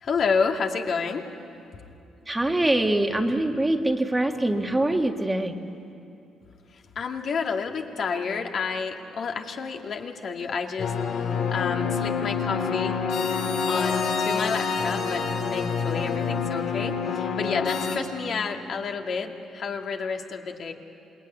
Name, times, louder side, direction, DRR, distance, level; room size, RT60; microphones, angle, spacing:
voice 1, 0.0-1.2 6.7-13.0 13.7-15.2 15.5-20.7, left 5 dB, 60° left, 2 dB, 2.3 m, -30 dB
voice 2, 2.3-5.5, right 1 dB, 15° right, 4 dB, 1.8 m, -24 dB
sound 1, 10.8-18.0, left 5 dB, 80° left, 3.7 m, -27 dB
27.5 x 20.0 x 9.9 m, 2.7 s
cardioid pair, 90°, 0 cm